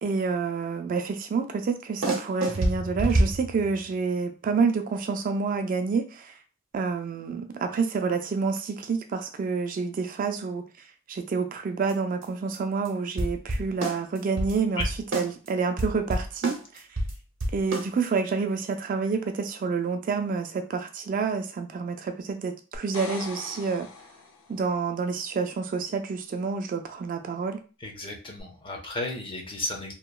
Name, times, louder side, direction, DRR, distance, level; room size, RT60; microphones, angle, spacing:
voice 1, 0.0-6.3 6.7-10.7 11.1-16.8 17.5-23.9 24.5-27.6, right 5 dB, 45° right, 0.3 m, -28 dB
sound 1, 2.0-3.9 11.9-12.0 12.2-12.3 12.5-12.6 12.9-13.0 13.2-15.5 15.8-18.1, right 1 dB, 65° right, 0.7 m, -27 dB
sound 2, 22.7-24.7 28.4-28.5, left 4 dB, 80° left, 0.5 m, -41 dB
voice 2, 27.8-29.9, left 2 dB, 25° left, 0.6 m, -33 dB
2.8 x 2.2 x 2.3 m
head